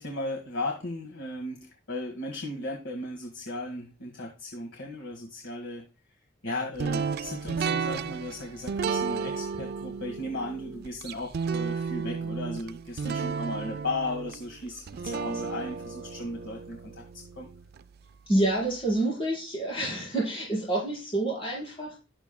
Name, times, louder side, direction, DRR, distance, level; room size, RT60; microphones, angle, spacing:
voice 1, 0.0-5.8 6.4-17.0 17.3-17.5, left 2 dB, 75° left, 1 dB, 1.7 m, -36 dB
sound 1, 6.8-17.8, right 5 dB, 55° right, 0.4 m, -33 dB
voice 2, 18.3-22.0, right 1 dB, 30° left, -7 dB, 5.2 m, -28 dB
12.5 x 8.3 x 2.3 m, 0.30 s
head